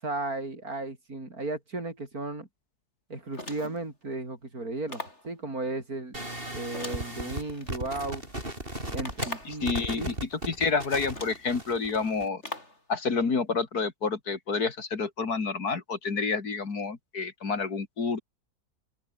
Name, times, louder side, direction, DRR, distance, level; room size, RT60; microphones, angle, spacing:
voice 1, 0.0-2.5 3.1-6.2 6.5-8.2 8.9-10.1, right 2 dB, 70° right, 5.9 m, -35 dB
sound 1, 3.3-3.9 4.9-5.3 6.7-7.7 9.0-9.7 10.6-10.7 11.1-11.5 12.4-12.8, left 1 dB, 45° left, 7.0 m, -40 dB
sound 2, 6.1-12.3, right 1 dB, 35° right, 8.4 m, -36 dB
voice 2, 9.4-12.4 12.9-18.2, left 4 dB, 85° left, 3.2 m, -29 dB
open air
omnidirectional pair, 1.6 m